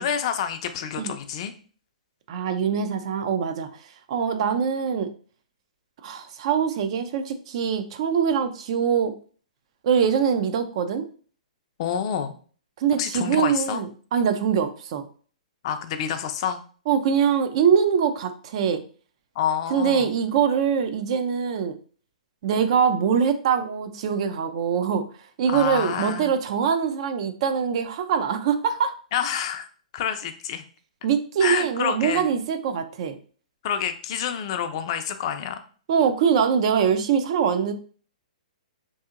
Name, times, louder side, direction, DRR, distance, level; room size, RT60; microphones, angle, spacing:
voice 1, 0.0-1.5 11.8-12.3 13.0-13.8 15.6-16.6 19.4-20.1 25.5-26.3 29.1-29.7 29.9-30.6 31.4-32.3 33.6-35.6, left 8 dB, 45° left, 8 dB, 0.4 m, -28 dB
voice 2, 2.3-3.7 4.1-5.1 6.0-9.1 9.8-11.1 12.8-15.1 16.9-18.8 19.7-21.8 22.4-25.0 25.4-28.9 31.0-33.2 35.9-37.7, right 7 dB, 50° right, 9 dB, 0.4 m, -23 dB
2.7 x 2.7 x 2.4 m, 0.42 s
hypercardioid pair, 140°, 4 cm